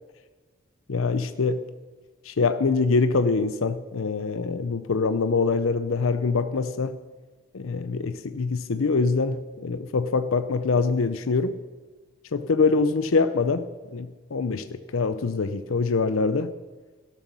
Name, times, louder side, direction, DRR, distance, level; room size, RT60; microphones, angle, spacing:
voice 1, 0.9-1.6 2.2-7.0 7.5-11.6 12.3-13.6 13.9-16.5, left 4 dB, 75° left, 11 dB, 0.6 m, -24 dB
13.0 x 12.0 x 5.5 m, 1.4 s
head